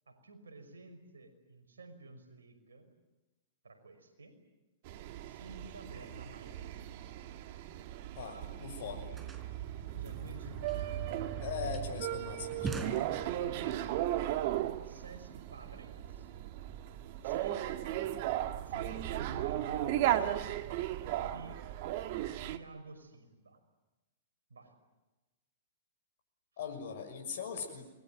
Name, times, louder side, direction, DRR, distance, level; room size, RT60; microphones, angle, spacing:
voice 1, 0.1-2.9 3.6-4.4 5.3-7.0 8.2-8.6 9.9-11.1 13.4-13.9 14.8-16.3 17.2-17.7 18.5-20.4 21.2-21.6 22.5-23.6 24.5-24.7, right 2 dB, 85° right, 7 dB, 5.6 m, -51 dB
sound 1, 4.8-22.6, right 13 dB, 55° right, 2.0 m, -36 dB
voice 2, 8.1-9.1 11.4-12.9 26.6-27.9, left 7 dB, 65° left, 5 dB, 6.4 m, -40 dB
sound 2, 8.2-8.3 8.5-13.7, right 3 dB, 15° right, 4.5 m, -44 dB
27.5 x 22.0 x 9.4 m, 1.1 s
hypercardioid pair, 115°, 0 cm